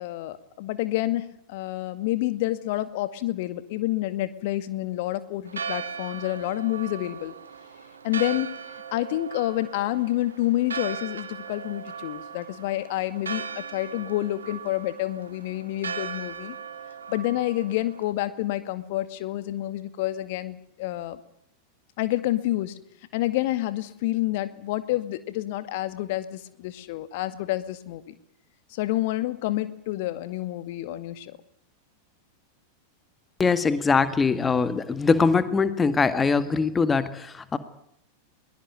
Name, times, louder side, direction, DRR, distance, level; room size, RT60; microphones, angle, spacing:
voice 1, 0.0-7.3 8.0-8.5 8.9-16.6 17.1-21.2 22.0-22.7 23.1-28.1 28.7-31.3, left 16 dB, 50° left, 13 dB, 2.1 m, -28 dB
Church bell, 5.5-18.1, right 6 dB, 70° right, 2.1 m, -38 dB
voice 2, 33.4-37.6, left 4 dB, 15° left, 12 dB, 1.9 m, -22 dB
22.5 x 21.5 x 9.4 m, 0.73 s
figure-of-eight pair, 90°, 0 cm